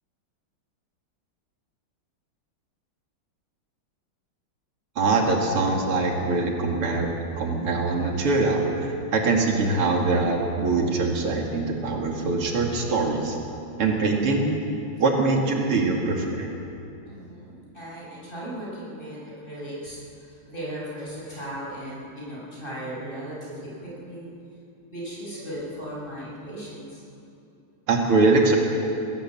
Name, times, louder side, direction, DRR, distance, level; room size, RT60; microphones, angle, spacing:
voice 1, 5.0-7.1 7.4-13.4 13.8-14.5 15.0-16.5 27.9-28.6, right 3 dB, 85° right, 0 dB, 3.2 m, -23 dB
voice 2, 17.1-24.3 24.9-27.0, right 1 dB, 20° left, -5 dB, 7.1 m, -37 dB
21.0 x 18.0 x 7.6 m, 2.7 s
omnidirectional pair, 2.4 m